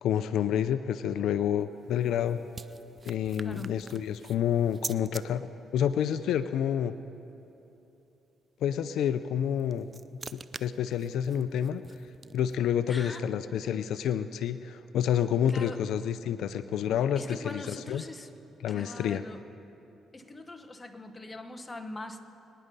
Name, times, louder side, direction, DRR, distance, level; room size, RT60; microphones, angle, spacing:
voice 1, 0.0-2.4 3.0-6.9 8.6-9.9 10.3-11.8 12.3-18.0 18.6-19.2, left 9 dB, 80° left, 12 dB, 0.4 m, -29 dB
sound 1, 1.6-5.2 9.4-12.7, right 4 dB, 35° right, 0.4 m, -45 dB
voice 2, 3.4-3.8 12.9-13.2 15.5-15.8 17.2-18.3 18.7-19.4 20.1-22.2, left 2 dB, 20° left, 7 dB, 1.1 m, -42 dB
25.5 x 10.0 x 5.4 m, 2.9 s
cardioid pair, 90°, 0 cm